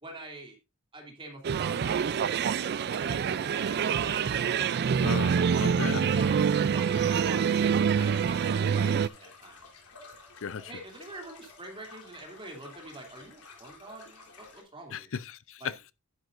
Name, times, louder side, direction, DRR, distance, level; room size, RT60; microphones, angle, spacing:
voice 1, 0.0-0.6 0.9-4.3 5.9-10.0 10.6-15.2 15.6-15.7, right 2 dB, 25° right, 2.8 m, -46 dB
sound 1, 1.4-9.1, right 7 dB, 45° right, 0.4 m, -26 dB
sound 2, 2.9-14.6, left 4 dB, 90° left, 3.7 m, -52 dB
sound 3, 3.9-9.0, right 2 dB, 70° right, 2.2 m, -51 dB
voice 2, 5.0-6.1 10.4-10.7 14.9-15.9, left 6 dB, 60° left, 0.6 m, -36 dB
11.5 x 9.3 x 2.6 m
head